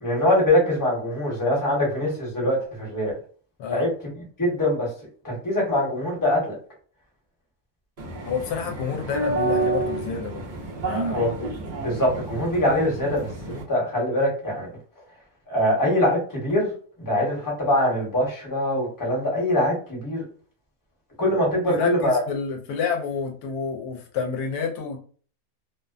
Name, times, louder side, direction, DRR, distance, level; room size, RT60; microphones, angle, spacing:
voice 1, 0.0-3.1 3.7-4.9 5.2-6.5 11.1-11.5 11.8-14.7 15.5-16.7 17.0-20.2 21.2-22.2, left 1 dB, 15° left, -4 dB, 0.9 m, -23 dB
sound 1, 8.0-13.6, right 2 dB, 65° right, 0.4 m, -29 dB
voice 2, 8.3-10.4 10.8-11.2 21.5-25.0, left 6 dB, 80° left, 3 dB, 1.1 m, -29 dB
2.6 x 2.1 x 2.4 m, 0.43 s
omnidirectional pair, 1.6 m